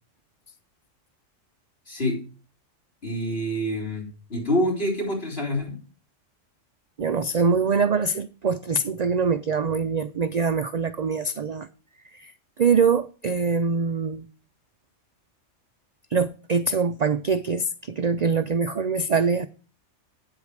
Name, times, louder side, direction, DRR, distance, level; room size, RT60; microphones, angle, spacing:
voice 1, 1.9-2.2 3.0-5.8, equal, 55° left, 4.2 m, -27 dB
voice 2, 7.0-11.7 12.1-12.3 12.6-14.3 16.1-19.5, right 5 dB, 50° right, 0.5 m, -24 dB
8.9 x 8.4 x 4.7 m
omnidirectional pair, 1.3 m